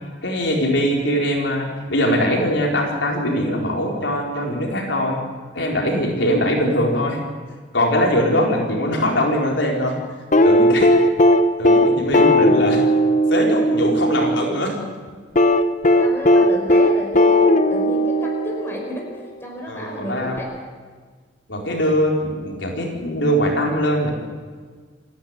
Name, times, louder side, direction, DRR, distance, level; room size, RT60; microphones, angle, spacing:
voice 1, 0.2-5.2 5.5-7.2 7.7-10.0 10.4-10.9 11.6-12.8 13.3-14.8 19.7-20.4 21.5-24.1, equal, 75° left, -1 dB, 4.3 m, -21 dB
sound 1, 10.3-14.4 15.4-18.9 20.4-20.5, left 1 dB, 40° left, 1.1 m, -16 dB
voice 2, 16.0-20.5, equal, 15° left, -1 dB, 5.3 m, -32 dB
28.5 x 11.5 x 8.2 m, 1.6 s
head